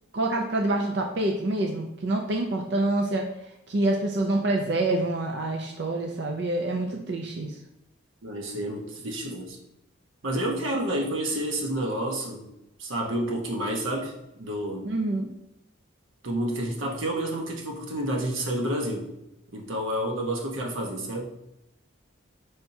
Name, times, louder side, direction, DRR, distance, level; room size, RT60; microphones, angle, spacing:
voice 1, 0.1-3.3 3.7-7.5 14.8-15.3, right 2 dB, 55° right, 1 dB, 0.5 m, -26 dB
voice 2, 8.2-9.6 10.2-12.5 12.8-14.1 14.4-14.9 16.2-19.1 19.5-21.3, right 1 dB, 75° right, 0 dB, 1.0 m, -29 dB
5.6 x 3.5 x 2.7 m, 0.88 s
head